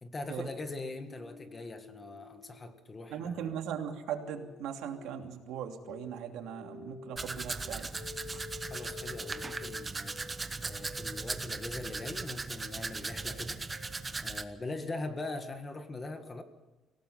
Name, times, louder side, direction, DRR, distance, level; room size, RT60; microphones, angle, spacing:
voice 1, 0.0-3.5 8.7-10.3 10.6-13.6 14.2-16.4, left 2 dB, 20° left, 7 dB, 1.7 m, -41 dB
sound 1, 0.8-14.0, left 4 dB, 50° left, 3.4 m, -51 dB
voice 2, 3.1-7.9, right 8 dB, 75° right, 4 dB, 2.8 m, -39 dB
Domestic sounds home sounds, 7.2-14.4, right 3 dB, 15° right, 0.9 m, -38 dB
26.0 x 17.5 x 5.7 m, 1.1 s
cardioid pair, 165°, 0 cm